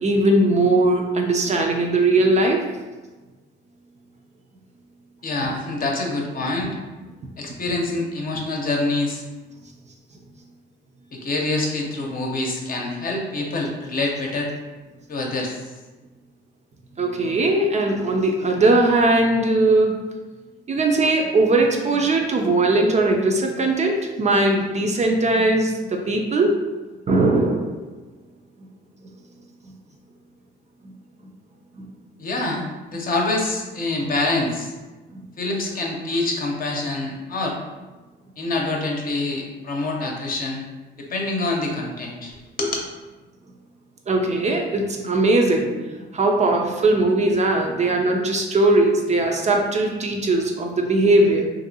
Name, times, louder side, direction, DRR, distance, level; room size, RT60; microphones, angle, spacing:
voice 1, 0.0-2.7 17.0-20.0 20.7-26.6 27.1-28.0 31.8-31.9 35.1-35.2 44.1-51.5, right 2 dB, 35° right, 2 dB, 0.4 m, -19 dB
voice 2, 5.2-6.7 7.4-9.2 11.1-14.5 15.1-15.7 32.2-34.7 35.4-37.6 38.4-40.6 41.0-42.9, left 2 dB, 45° left, -1 dB, 0.7 m, -26 dB
2.9 x 2.6 x 2.7 m, 1.2 s
cardioid pair, 90°, 20 cm